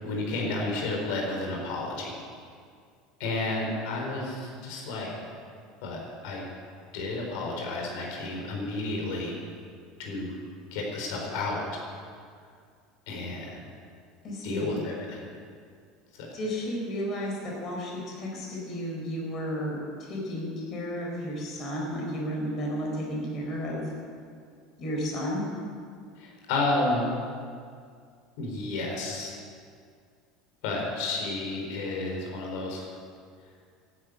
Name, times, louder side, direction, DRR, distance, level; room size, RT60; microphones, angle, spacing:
voice 1, 0.0-2.1 3.2-5.1 5.8-6.4 6.9-9.3 10.0-10.3 10.7-11.6 13.1-13.6 14.4-15.2 26.2-27.1 28.4-29.3 30.6-32.8, left 2 dB, 70° left, -1 dB, 4.5 m, -31 dB
voice 2, 14.2-14.8 16.3-23.9 24.8-25.4, equal, 35° left, -1 dB, 4.5 m, -33 dB
12.5 x 10.5 x 9.5 m, 2.2 s
cardioid pair, 165°, 0 cm